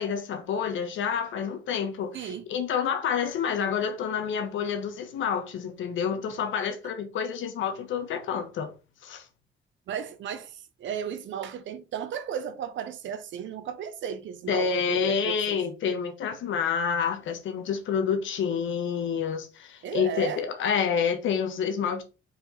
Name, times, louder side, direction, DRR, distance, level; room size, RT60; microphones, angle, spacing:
voice 1, 0.0-8.7 9.0-9.2 14.5-22.0, left 7 dB, 75° left, 1.3 m, -28 dB
voice 2, 2.1-2.5 9.9-15.6 19.8-20.4, right 8 dB, 70° right, 1.0 m, -35 dB
5.0 x 4.7 x 4.0 m
cardioid pair, 90°, 20 cm